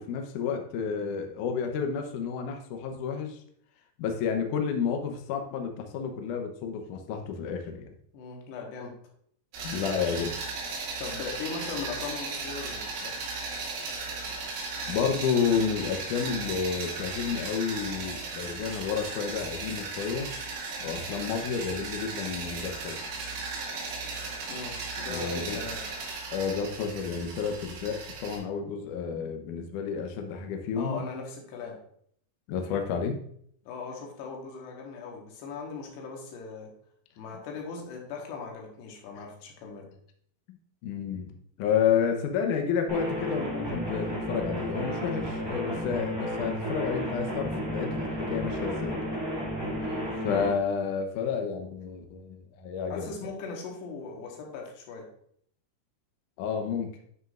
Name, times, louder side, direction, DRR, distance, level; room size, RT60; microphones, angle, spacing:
voice 1, 0.0-3.4 4.0-8.0 9.6-10.3 14.9-20.3 20.8-23.0 25.1-25.6 26.3-31.0 32.5-33.2 40.8-49.0 50.2-53.1 56.4-56.9, left 6 dB, 75° left, 4 dB, 1.9 m, -30 dB
voice 2, 8.1-9.0 10.0-10.2 11.0-13.2 24.5-25.8 30.8-31.8 33.7-36.7 37.2-39.9 49.8-50.1 52.9-55.1, left 5 dB, 90° left, 0 dB, 3.5 m, -39 dB
sound 1, 9.5-28.4, right 3 dB, 85° right, 4.0 m, -36 dB
sound 2, 42.9-50.5, equal, 20° right, 0.7 m, -32 dB
9.6 x 6.3 x 2.5 m, 0.66 s
omnidirectional pair, 4.7 m